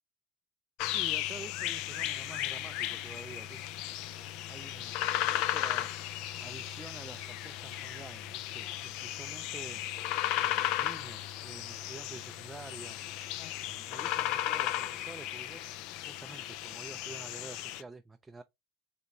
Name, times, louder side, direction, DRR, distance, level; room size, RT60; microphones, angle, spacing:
sound 1, 0.8-17.8, left 13 dB, 60° left, 0.3 m, -35 dB
voice 1, 0.8-3.6 4.2-4.9 5.2-9.8 10.4-13.0 13.7-15.6 16.1-18.4, right 3 dB, 15° right, 0.4 m, -49 dB
3.4 x 2.8 x 3.8 m
hypercardioid pair, 75°, 0 cm